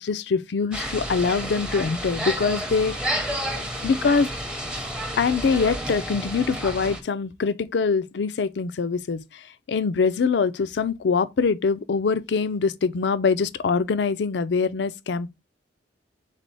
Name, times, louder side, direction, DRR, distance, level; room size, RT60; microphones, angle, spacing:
voice 1, 0.0-3.2 3.5-4.3 5.2-15.3, left 5 dB, 75° left, 0.4 m, -24 dB
sound 1, 0.7-7.0, right 1 dB, 5° right, 0.7 m, -30 dB
3.7 x 3.3 x 4.0 m
head